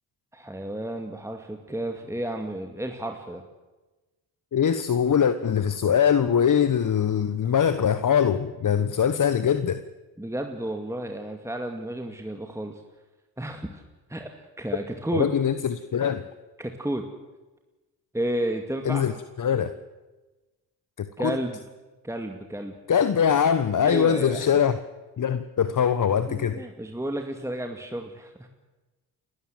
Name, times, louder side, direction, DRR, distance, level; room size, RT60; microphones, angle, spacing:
voice 1, 0.3-3.4 10.2-12.8 13.4-13.8 14.1-15.3 16.6-17.1 18.1-19.0 21.2-21.6 22.0-22.8 23.8-24.5 26.3-28.5, right 1 dB, 5° right, 4 dB, 2.3 m, -32 dB
voice 2, 4.5-9.8 15.1-16.3 18.8-19.1 19.4-19.7 21.0-21.4 22.9-24.8 25.2-26.6, left 8 dB, 40° left, 12 dB, 1.2 m, -22 dB
29.5 x 13.0 x 7.9 m, 1.2 s
hypercardioid pair, 45°, 47 cm